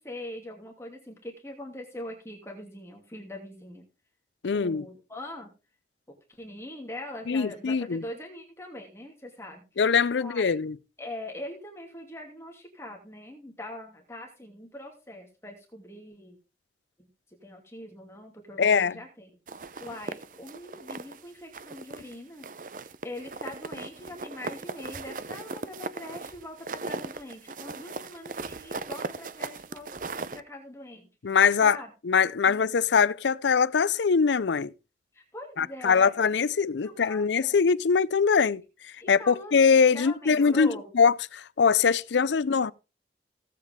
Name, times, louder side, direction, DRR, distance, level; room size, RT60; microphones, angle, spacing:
voice 1, 0.0-3.8 4.5-5.5 6.1-9.6 10.1-10.6 11.0-16.4 17.0-19.3 19.8-22.5 22.8-30.0 30.3-31.1 31.6-31.9 32.4-32.7 35.1-36.3 36.8-37.5 39.0-40.9 42.1-42.3, left 1 dB, 15° left, 2.6 m, -42 dB
voice 2, 4.4-4.8 7.3-8.0 9.8-10.8 18.6-19.0 31.2-31.8 32.0-34.7 35.6-38.6 39.1-42.7, left 6 dB, 85° left, 0.5 m, -22 dB
sound 1, 19.5-21.2 21.5-22.1 22.4-30.4, right 3 dB, 50° right, 0.7 m, -38 dB
16.5 x 8.3 x 3.6 m
head